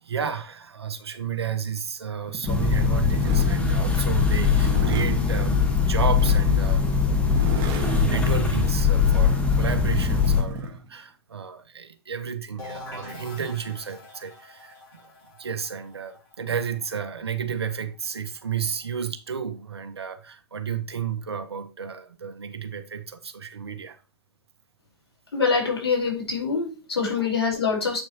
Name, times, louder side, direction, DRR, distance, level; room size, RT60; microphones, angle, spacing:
voice 1, 0.0-6.9 8.0-15.0 15.4-24.0 27.2-27.3, right 7 dB, 75° right, 1.5 m, -32 dB
sound 1, 2.3-10.8, right 4 dB, 35° right, 1.8 m, -33 dB
sound 2, 2.5-10.4, left 6 dB, 10° left, 1.5 m, -21 dB
sound 3, 12.6-18.2, left 2 dB, 25° left, 4.7 m, -44 dB
voice 2, 25.3-28.0, left 5 dB, 75° left, 4.3 m, -25 dB
8.9 x 6.0 x 3.0 m
figure-of-eight pair, 115°, 14 cm